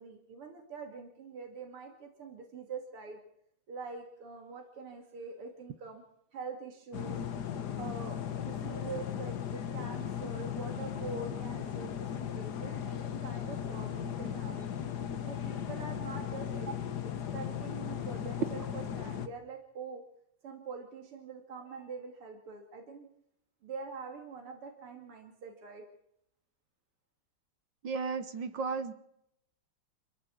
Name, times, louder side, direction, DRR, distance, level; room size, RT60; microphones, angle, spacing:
voice 1, 0.0-3.2 3.7-6.0 6.3-7.2 7.8-14.7 15.2-16.7 17.3-20.0 20.4-23.1 23.6-25.8, right 4 dB, 80° right, 2 dB, 3.6 m, -44 dB
sound 1, 6.9-19.3, left 9 dB, 55° left, 1.6 m, -37 dB
voice 2, 27.8-28.9, right 4 dB, 60° right, 11 dB, 1.8 m, -34 dB
27.0 x 14.5 x 8.6 m, 0.75 s
omnidirectional pair, 2.4 m